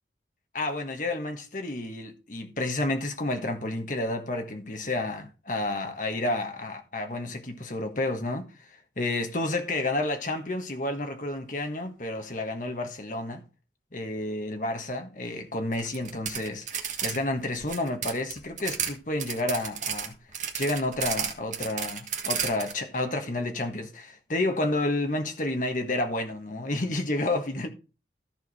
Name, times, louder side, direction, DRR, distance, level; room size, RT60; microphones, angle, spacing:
voice 1, 0.5-8.5 9.0-13.4 13.9-20.1 20.6-27.7, left 2 dB, 45° left, 1.4 m, -30 dB
sound 1, 15.7-17.2 17.4-18.9 19.2-22.7, right 8 dB, 45° right, 1.6 m, -32 dB
14.0 x 4.8 x 4.8 m
head